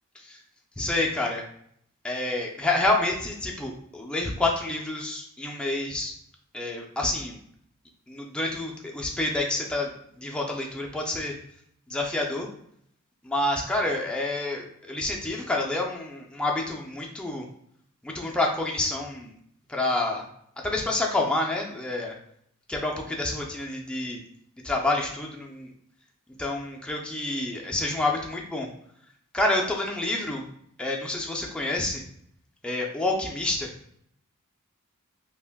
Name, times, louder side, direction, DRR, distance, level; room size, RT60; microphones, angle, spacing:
voice 1, 0.8-1.4 2.0-6.1 6.5-7.4 8.1-9.9 10.2-11.3 11.9-12.5 13.2-17.4 18.0-19.3 19.7-20.2 20.6-22.1 22.7-24.2 24.6-25.7 26.4-28.7 29.3-30.4 30.8-32.0 32.6-33.7, left 2 dB, 5° left, -1 dB, 0.3 m, -28 dB
2.5 x 2.2 x 3.4 m, 0.69 s
head